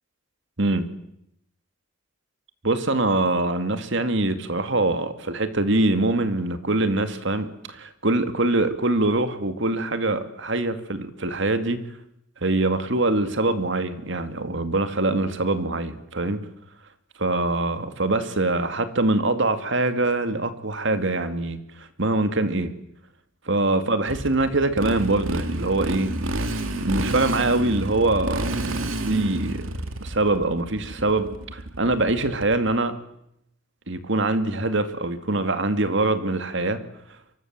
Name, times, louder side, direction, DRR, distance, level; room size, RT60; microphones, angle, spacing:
voice 1, 2.6-11.8 12.4-16.4 17.2-21.6 22.0-22.7 23.5-26.1 26.8-28.5 29.0-29.7 30.0-32.9 33.9-36.8, right 2 dB, 65° right, 9 dB, 2.4 m, -23 dB
Motorcycle, 24.1-32.7, right 1 dB, 85° right, 2.6 m, -29 dB
29.0 x 24.0 x 7.6 m, 0.78 s
head